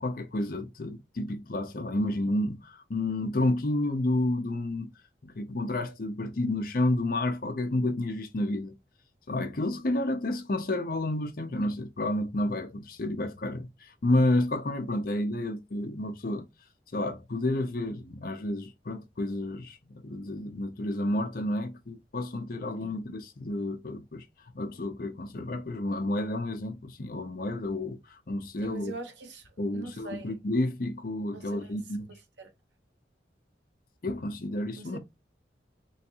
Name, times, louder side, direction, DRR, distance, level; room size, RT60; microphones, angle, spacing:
voice 1, 0.0-4.9 5.2-8.7 9.3-16.5 16.9-24.2 24.5-28.9 29.6-32.1 34.0-35.0, left 1 dB, 50° left, 0.6 m, -30 dB
voice 2, 28.6-30.3 31.3-31.8 32.4-32.5 34.8-35.0, right 3 dB, 85° right, 1.0 m, -42 dB
3.5 x 3.2 x 2.9 m
head